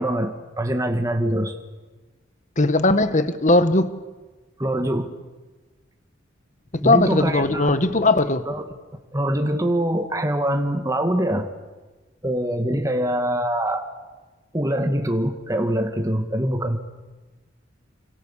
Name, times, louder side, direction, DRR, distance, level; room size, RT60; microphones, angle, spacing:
voice 1, 0.0-1.5 4.6-5.1 6.8-7.8 8.5-8.6 9.1-11.5 12.2-13.9 14.5-16.8, right 1 dB, 15° right, 2.0 m, -24 dB
voice 2, 2.6-3.9 6.7-8.4, left 2 dB, 40° left, 1.5 m, -19 dB
29.5 x 25.5 x 7.5 m
head